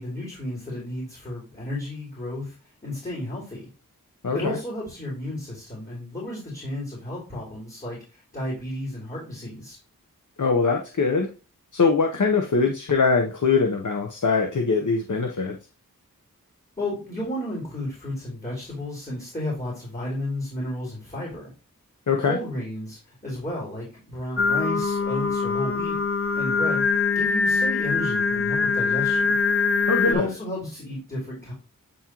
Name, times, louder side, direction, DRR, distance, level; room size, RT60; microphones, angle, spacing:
voice 1, 0.0-2.5 2.8-3.7 4.3-9.8 16.8-21.5 22.3-26.0 26.3-26.8 27.1-29.3 30.0-31.5, left 1 dB, 25° left, -6 dB, 3.4 m, -32 dB
voice 2, 4.2-4.6 10.4-11.3 11.7-15.6 22.1-22.4 29.9-30.3, left 4 dB, 60° left, 3 dB, 0.9 m, -22 dB
Singing, 24.4-30.1, left 5 dB, 40° left, 0.6 m, -23 dB
8.6 x 3.7 x 2.9 m, 0.33 s
wide cardioid pair, 55°, 34 cm